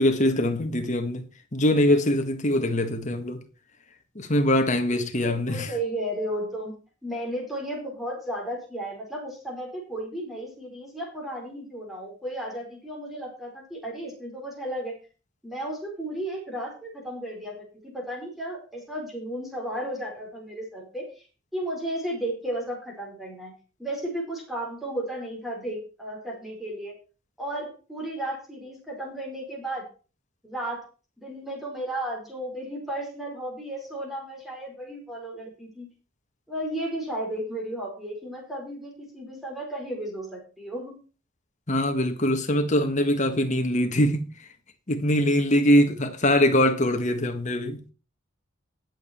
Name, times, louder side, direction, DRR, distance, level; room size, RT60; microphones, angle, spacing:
voice 1, 0.0-3.4 4.2-5.7 41.7-44.3 44.9-47.8, left 1 dB, 35° left, 1.7 m, -23 dB
voice 2, 5.2-6.7 7.0-14.9 15.4-21.1 21.5-23.5 23.8-26.9 27.4-29.8 30.4-30.8 31.2-35.9 36.5-41.0 45.6-45.7, right 1 dB, ahead, 4.8 m, -34 dB
17.5 x 7.3 x 4.5 m
head